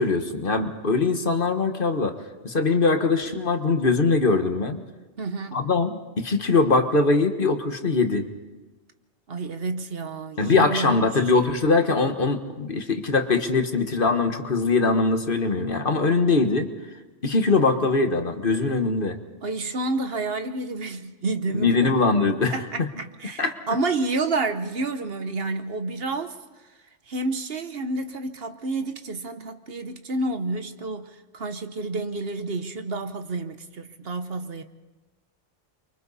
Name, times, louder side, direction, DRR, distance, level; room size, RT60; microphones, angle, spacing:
voice 1, 0.0-2.2 2.4-4.8 5.5-8.3 10.4-16.7 17.2-19.2 21.5-22.9 23.4-23.5, left 3 dB, 50° left, 6 dB, 1.5 m, -22 dB
voice 2, 5.2-5.7 9.3-11.0 19.4-21.9 22.3-26.4 27.1-34.6, right 3 dB, 55° right, 8 dB, 1.2 m, -29 dB
29.5 x 24.0 x 4.1 m, 1.2 s
omnidirectional pair, 1.2 m